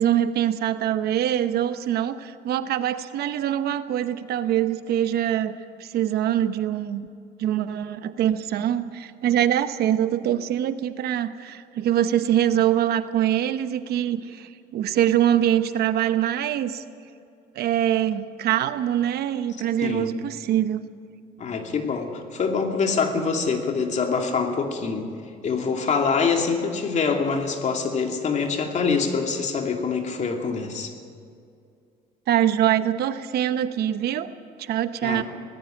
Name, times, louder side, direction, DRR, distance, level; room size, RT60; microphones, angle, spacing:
voice 1, 0.0-5.5 5.8-7.0 7.4-16.8 17.5-20.9 32.3-34.3 34.6-35.2, right 11 dB, 70° right, 11 dB, 1.0 m, -24 dB
voice 2, 19.8-20.1 21.4-25.1 25.4-30.9 35.0-35.2, left 5 dB, 45° left, 3 dB, 2.7 m, -25 dB
19.0 x 15.0 x 9.1 m, 2.4 s
cardioid pair, 110°, 17 cm